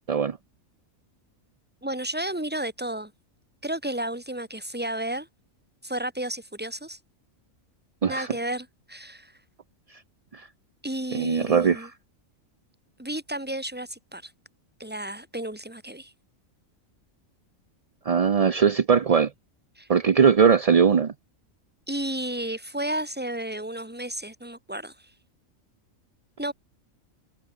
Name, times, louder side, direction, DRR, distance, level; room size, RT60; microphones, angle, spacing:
voice 1, 1.8-3.1 3.6-5.3 5.8-7.0 8.1-9.3 10.8-11.9 13.0-14.3 14.8-16.1 19.8-19.9 21.9-25.0 26.4-26.5, right 1 dB, 5° right, 2.0 m, -32 dB
voice 2, 11.1-11.9 18.0-19.3 19.9-21.1, right 6 dB, 40° right, 0.6 m, -20 dB
omnidirectional pair, 1.4 m